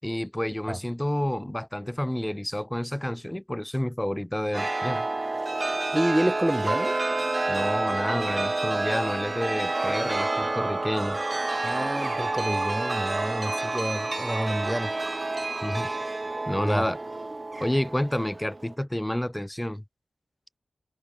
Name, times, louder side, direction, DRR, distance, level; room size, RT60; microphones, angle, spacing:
voice 1, 0.0-5.1 7.5-11.2 15.6-15.9 16.5-17.0 17.6-19.8, left 1 dB, 10° left, 6.3 m, -29 dB
Chime, 4.5-18.7, right 2 dB, 30° right, 2.9 m, -29 dB
voice 2, 5.9-7.0 11.6-14.9 16.6-16.9, right 1 dB, 10° right, 3.4 m, -28 dB
cardioid pair, 60°, 0 cm